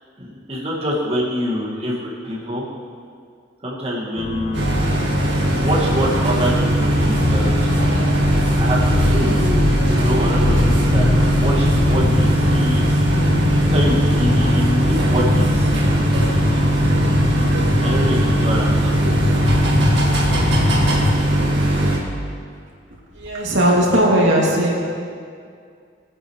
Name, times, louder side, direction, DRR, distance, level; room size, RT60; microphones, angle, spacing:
voice 1, 0.2-2.7 3.6-4.7 5.5-7.7 8.6-9.5 9.9-12.9 13.7-15.8 17.8-19.0, equal, 35° right, -5 dB, 1.9 m, -25 dB
sound 1, 4.2-21.2, left 2 dB, 35° left, 0.4 m, -23 dB
sound 2, 4.5-22.0, right 1 dB, 70° right, 1.8 m, -19 dB
voice 2, 23.1-24.7, right 1 dB, 90° right, -4 dB, 2.5 m, -17 dB
17.5 x 8.8 x 3.2 m, 2.2 s
head